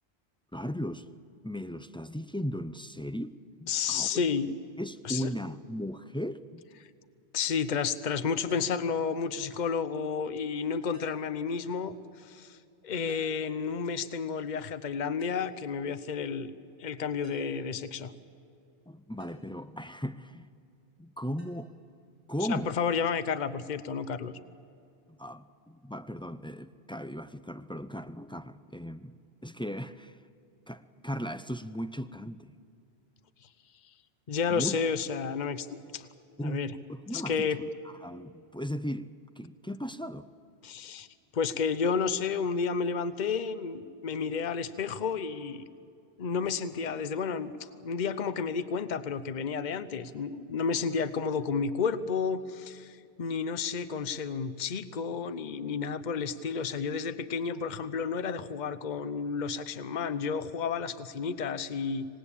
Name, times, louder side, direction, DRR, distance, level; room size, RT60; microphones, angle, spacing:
voice 1, 0.5-1.1 1.4-4.2 4.8-6.7 18.9-20.5 21.0-21.7 22.3-22.7 25.1-29.1 29.4-30.2 30.7-32.6 34.5-34.8 36.4-37.6 38.0-39.1 39.4-40.3, equal, 5° left, 10 dB, 0.4 m, -37 dB
voice 2, 3.7-4.6 5.0-5.3 7.3-12.6 12.8-16.5 16.8-18.1 22.5-24.3 34.3-36.1 36.4-36.7 37.1-37.6 40.6-41.1 41.3-45.6 46.2-62.1, left 6 dB, 45° left, 13 dB, 0.9 m, -31 dB
sound 1, 8.5-8.9 10.9-11.3 13.1-13.5 15.2-15.6 17.2-17.6 19.2-19.5 21.4-21.6, left 1 dB, 85° left, 5.3 m, -52 dB
26.0 x 19.0 x 8.5 m, 2.6 s
omnidirectional pair, 1.1 m